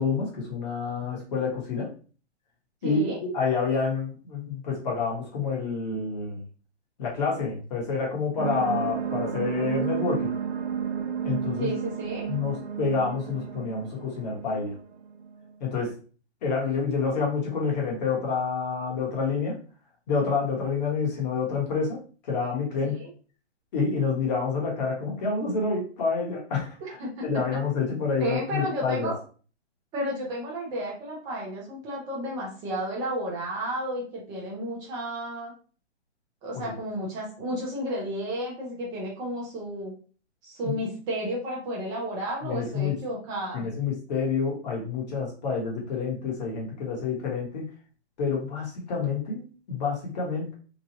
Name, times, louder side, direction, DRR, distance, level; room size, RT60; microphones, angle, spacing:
voice 1, 0.0-1.9 2.8-6.4 7.0-10.3 11.2-11.7 12.3-14.7 15.6-15.9 16.4-19.6 20.1-22.0 22.3-23.0 23.7-27.0 27.2-29.1 36.5-36.6 40.6-40.8 42.4-43.0 43.5-47.7 48.2-50.5, left 5 dB, 35° left, -2 dB, 1.1 m, -28 dB
voice 2, 2.8-3.2 11.6-12.3 22.9-23.1 26.8-27.1 28.2-29.2 29.9-35.5 36.4-39.9 40.4-43.6, right 1 dB, 10° right, -4 dB, 0.6 m, -32 dB
sound 1, 8.4-15.4, right 7 dB, 70° right, 0.7 m, -32 dB
3.0 x 2.3 x 2.8 m, 0.39 s
hypercardioid pair, 150°, 35 cm